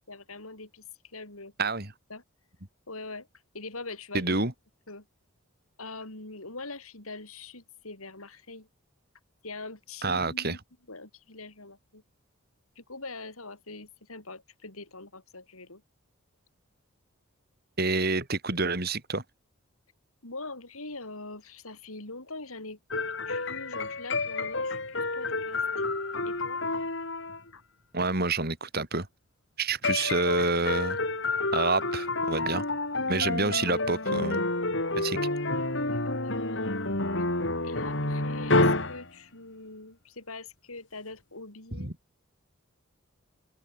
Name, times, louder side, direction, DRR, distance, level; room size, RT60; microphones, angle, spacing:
voice 1, 0.0-1.7 2.1-2.2 2.9-3.3 3.5-4.4 4.9-5.0 5.8-8.7 9.4-10.6 10.9-12.0 12.8-15.8 20.2-22.8 23.2-25.6 26.2-26.6 27.5-27.6 33.2-33.3 35.0-35.4 35.8-36.6 37.2-37.3 37.6-41.9, left 3 dB, 85° left, 6.4 m, -43 dB
voice 2, 1.6-1.9 4.1-4.5 10.0-10.6 17.8-19.2 27.9-29.1 29.6-31.0 31.5-32.7 33.1-34.4 35.0-35.2 41.8-41.9, right 3 dB, 45° right, 3.8 m, -28 dB
sound 1, 22.9-27.5 29.8-39.1, left 2 dB, 55° left, 4.3 m, -29 dB
head